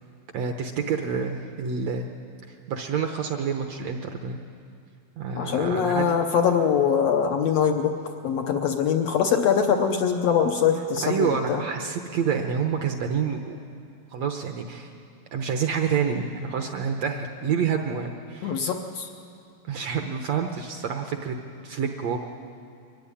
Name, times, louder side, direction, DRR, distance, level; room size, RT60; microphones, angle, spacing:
voice 1, 0.3-2.1 2.5-4.4 5.2-6.1 11.0-13.6 14.1-14.9 15.3-18.6 19.6-21.4 21.6-22.2, right 6 dB, 70° right, 4 dB, 1.7 m, -28 dB
voice 2, 5.4-8.0 8.2-11.6 18.4-19.1, left 7 dB, 75° left, 5 dB, 1.5 m, -23 dB
23.0 x 14.5 x 9.9 m, 2.4 s
omnidirectional pair, 4.0 m